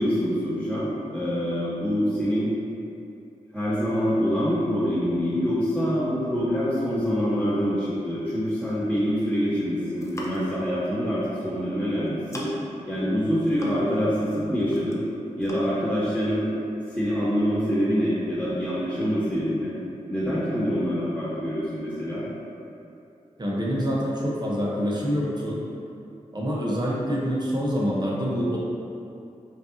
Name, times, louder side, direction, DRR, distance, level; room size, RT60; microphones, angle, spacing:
voice 1, 0.0-2.5 3.5-12.5 12.9-15.0 15.4-16.4 16.9-19.7 20.1-22.2, equal, 15° right, -15 dB, 1.5 m, -25 dB
sound 1, 9.8-10.6 11.6-11.8 12.1-12.7 13.2-14.1 14.4-15.1 15.4-15.6, left 1 dB, 20° left, 0.7 m, -40 dB
voice 2, 23.4-25.6 26.3-28.6, equal, 30° right, -5 dB, 1.0 m, -26 dB
5.2 x 2.6 x 2.8 m, 2.7 s
cardioid pair, 45°, 14 cm